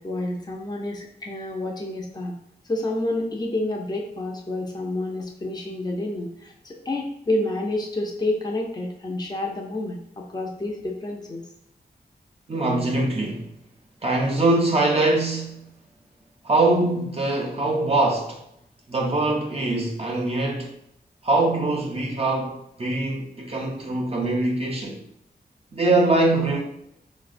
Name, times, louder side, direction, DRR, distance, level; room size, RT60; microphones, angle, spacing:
voice 1, 0.0-2.3 2.7-10.0 10.3-11.4, left 1 dB, 25° left, 0 dB, 0.5 m, -29 dB
voice 2, 12.5-13.6 14.0-15.7 16.4-18.4 18.9-20.7 21.2-25.0 25.7-26.6, right 2 dB, 35° right, -1 dB, 0.4 m, -23 dB
4.1 x 2.0 x 2.4 m, 0.78 s
wide cardioid pair, 115°, 17 cm